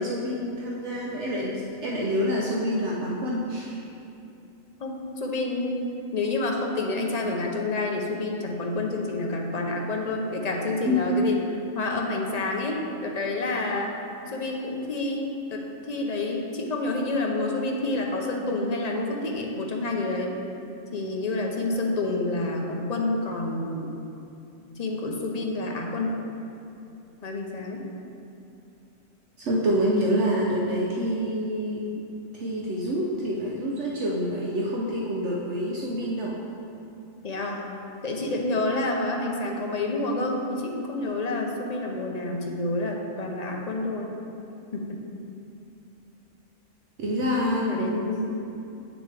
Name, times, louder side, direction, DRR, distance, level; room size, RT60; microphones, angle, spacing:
voice 1, 0.0-3.8 10.8-11.1 29.4-31.9 32.3-36.4 47.0-48.0, equal, 65° right, -3 dB, 1.0 m, -27 dB
voice 2, 4.8-5.9 6.1-11.4 11.7-14.0 14.3-20.3 20.9-23.9 24.8-26.1 27.2-27.8 37.2-37.7 38.0-44.1 44.7-45.0 47.5-48.3, left 2 dB, 40° left, 1 dB, 0.7 m, -28 dB
8.4 x 6.2 x 3.3 m, 2.7 s
omnidirectional pair, 1.4 m